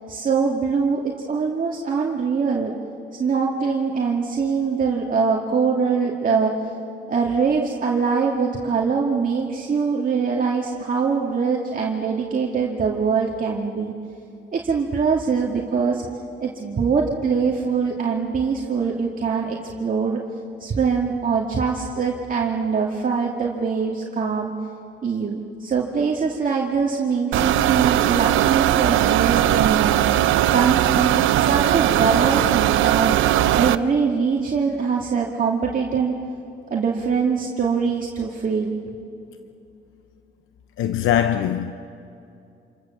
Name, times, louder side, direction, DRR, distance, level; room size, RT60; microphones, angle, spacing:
voice 1, 0.1-2.7 3.2-6.6 7.1-13.9 14.5-16.0 16.4-20.2 20.6-24.5 25.0-30.0 30.5-33.2 33.5-36.2 36.7-38.8, right 5 dB, 45° right, 2.3 m, -23 dB
sound 1, 27.3-33.8, right 13 dB, 85° right, 0.7 m, -19 dB
voice 2, 40.8-41.7, left 10 dB, 85° left, 0.8 m, -21 dB
28.0 x 28.0 x 7.2 m
cardioid pair, 90°, 20 cm